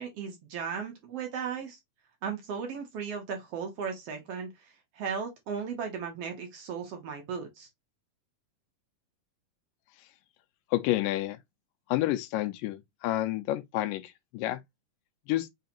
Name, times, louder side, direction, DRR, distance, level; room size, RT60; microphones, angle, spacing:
voice 1, 0.0-1.8 2.2-7.7, right 6 dB, 65° right, 1.6 m, -36 dB
voice 2, 10.7-11.4 11.9-14.6 15.3-15.5, left 15 dB, 90° left, 2.3 m, -29 dB
5.5 x 3.4 x 2.8 m
omnidirectional pair, 3.9 m